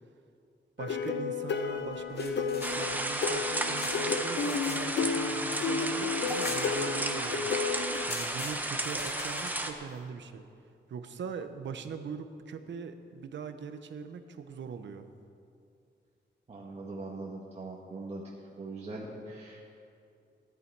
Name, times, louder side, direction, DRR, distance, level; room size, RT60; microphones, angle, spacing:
sound 1, 0.8-8.1, left 5 dB, 75° left, 0.9 m, -32 dB
voice 1, 0.8-10.4 10.9-15.1, right 6 dB, 75° right, 8 dB, 0.9 m, -41 dB
sound 2, 1.9-4.8 5.1-7.3 7.6-7.7 7.9-9.7, left 3 dB, 60° left, 1.9 m, -44 dB
sound 3, 2.6-9.7, right 1 dB, 10° right, 0.8 m, -33 dB
voice 2, 16.5-18.2 18.6-19.7, right 2 dB, 35° right, -4 dB, 1.3 m, -41 dB
16.5 x 11.0 x 4.7 m, 2.5 s
wide cardioid pair, 160°, 19 cm